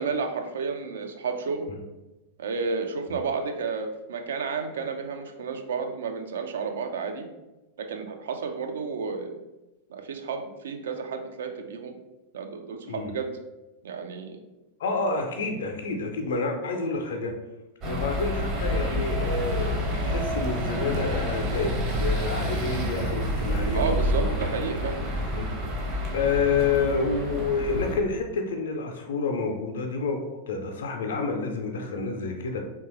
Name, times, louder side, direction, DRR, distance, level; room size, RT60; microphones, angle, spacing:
voice 1, 0.0-1.7 2.4-7.3 7.8-9.4 9.9-11.9 12.3-13.3 13.8-14.4 23.7-25.0, right 5 dB, 65° right, 5 dB, 0.4 m, -31 dB
voice 2, 14.8-17.3 17.8-23.8 24.1-24.4 25.0-25.5 25.8-32.6, left 4 dB, 65° left, 3 dB, 0.4 m, -29 dB
sound 1, 17.8-27.9, equal, 40° right, 0.8 m, -28 dB
3.0 x 2.2 x 2.9 m, 1.0 s
figure-of-eight pair, 90°, 0 cm